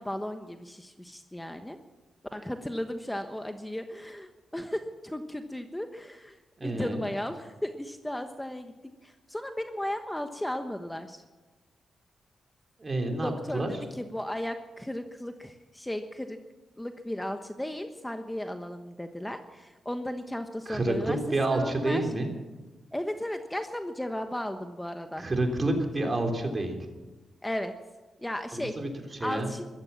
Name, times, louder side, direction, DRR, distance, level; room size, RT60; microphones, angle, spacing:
voice 1, 0.0-1.8 2.3-8.7 9.0-11.2 13.2-13.6 13.9-16.4 16.8-21.2 21.5-22.0 22.9-25.3 27.4-27.7 28.2-28.7 29.2-29.6, left 1 dB, 10° left, 7 dB, 1.1 m, -35 dB
voice 2, 6.6-7.0 12.8-13.7 20.7-22.3 25.2-26.8 28.5-29.5, right 2 dB, 35° right, 3 dB, 3.7 m, -29 dB
14.5 x 13.5 x 7.3 m, 1.2 s
cardioid pair, 60°, 0 cm